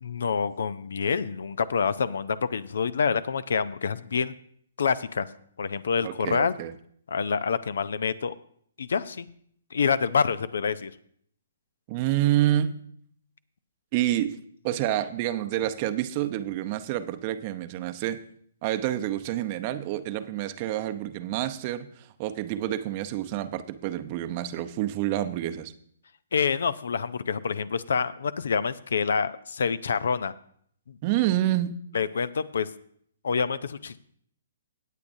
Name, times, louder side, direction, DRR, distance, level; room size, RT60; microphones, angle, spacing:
voice 1, 0.0-4.3 4.8-5.3 5.6-6.5 7.1-8.3 8.8-9.3 9.7-10.9 26.3-30.3 30.9-31.0 31.9-32.7 33.2-34.0, left 6 dB, 65° left, 17 dB, 0.5 m, -27 dB
voice 2, 6.0-6.7 11.9-12.8 13.9-14.4 14.6-18.2 18.6-25.7 31.0-31.8, right 13 dB, 35° right, 10 dB, 0.7 m, -28 dB
17.5 x 8.2 x 2.7 m, 0.63 s
figure-of-eight pair, 130°, 0 cm